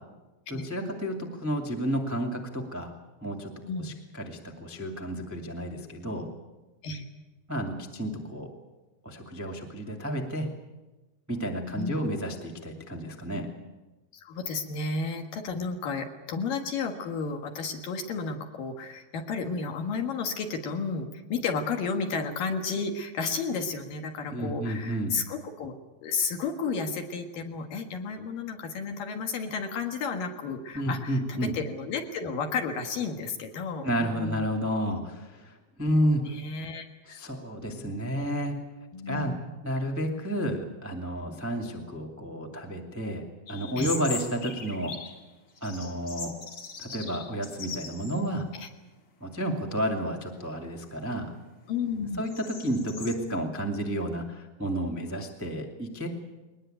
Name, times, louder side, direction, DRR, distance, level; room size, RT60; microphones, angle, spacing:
voice 1, 0.5-2.9 3.2-6.3 7.5-8.5 9.0-10.5 11.3-13.5 24.3-25.2 30.7-31.5 33.8-36.3 37.0-38.6 39.0-39.3 39.6-43.2 43.5-44.9 45.6-46.3 46.8-48.5 49.2-51.3 52.2-56.1, equal, 10° right, 1 dB, 0.7 m, -31 dB
voice 2, 14.1-25.8 26.0-34.5 34.9-35.0 36.2-37.2 37.7-38.2 38.9-39.5 43.8-44.0 48.6-48.7 51.7-52.2, left 4 dB, 60° left, 4 dB, 3.1 m, -32 dB
sound 1, 43.5-45.2 45.6-48.3 48.6-48.7 49.5-49.8 50.3-53.1, left 4 dB, 35° left, 2.9 m, -40 dB
21.5 x 20.0 x 9.1 m, 1.1 s
omnidirectional pair, 4.9 m